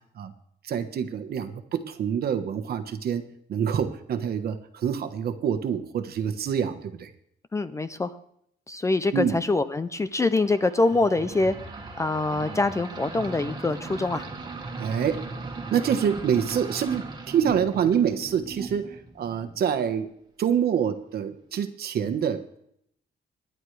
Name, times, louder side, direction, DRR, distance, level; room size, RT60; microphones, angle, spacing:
voice 1, 0.6-3.2 3.5-7.1 9.1-9.4 14.8-15.2 15.7-18.8 19.2-20.1 20.4-22.6, right 8 dB, 55° right, 9 dB, 1.2 m, -26 dB
voice 2, 7.5-8.1 8.7-11.6 12.0-14.2, left 3 dB, 15° left, 12 dB, 0.4 m, -24 dB
sound 1, 10.4-19.7, right 3 dB, 25° right, 1.7 m, -38 dB
26.5 x 10.5 x 3.3 m, 0.72 s
cardioid pair, 160°, 19 cm